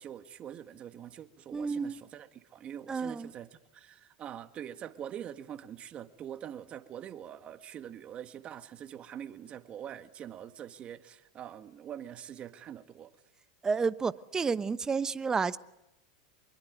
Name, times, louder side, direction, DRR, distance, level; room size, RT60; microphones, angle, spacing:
voice 1, 0.0-13.1, right 10 dB, 35° right, 1.7 m, -44 dB
voice 2, 1.5-2.0 2.9-3.3 13.6-15.6, right 5 dB, 15° right, 1.0 m, -30 dB
25.5 x 22.5 x 9.4 m
hypercardioid pair, 115°, 4 cm